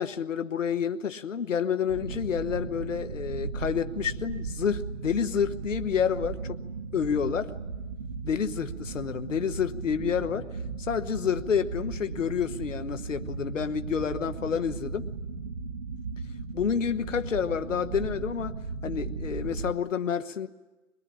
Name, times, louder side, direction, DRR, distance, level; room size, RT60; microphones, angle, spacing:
voice 1, 0.0-6.6 6.9-7.5 8.2-10.5 10.8-15.1 16.5-18.6 18.8-20.5, left 7 dB, 70° left, 10 dB, 1.3 m, -29 dB
sound 1, 1.9-19.7, right 4 dB, 35° right, 1.3 m, -36 dB
23.5 x 21.5 x 10.0 m, 1.2 s
hypercardioid pair, 160°, 39 cm